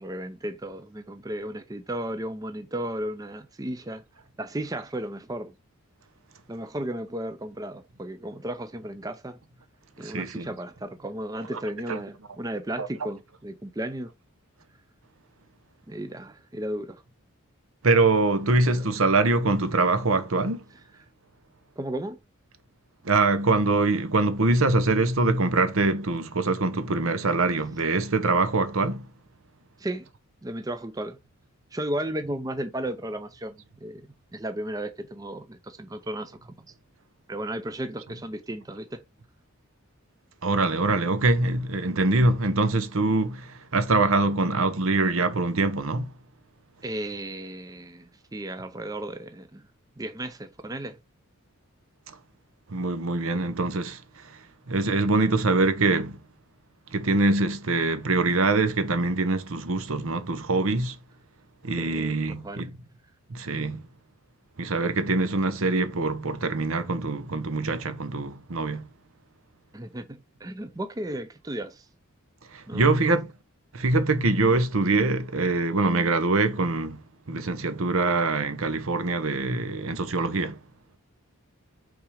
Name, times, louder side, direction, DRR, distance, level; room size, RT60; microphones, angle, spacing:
voice 1, 0.0-4.0 4.4-5.6 6.5-9.4 10.0-14.1 15.9-17.0 18.7-18.8 21.8-22.2 29.8-30.1 30.4-31.2 31.7-34.1 34.3-36.5 37.3-39.0 46.8-49.7 50.0-51.0 61.8-62.7 69.7-71.9 72.7-73.0, right 1 dB, 15° right, 0.4 m, -34 dB
voice 2, 10.0-10.5 11.9-12.0 12.8-12.9 17.8-20.6 23.0-29.1 40.4-46.1 52.1-52.2 52.7-54.4 54.7-56.2 56.9-61.0 61.6-62.7 63.3-63.8 64.6-68.9 72.5-73.3 73.7-77.0 77.3-80.6, right 3 dB, 70° right, 0.9 m, -24 dB
5.8 x 3.7 x 4.9 m
head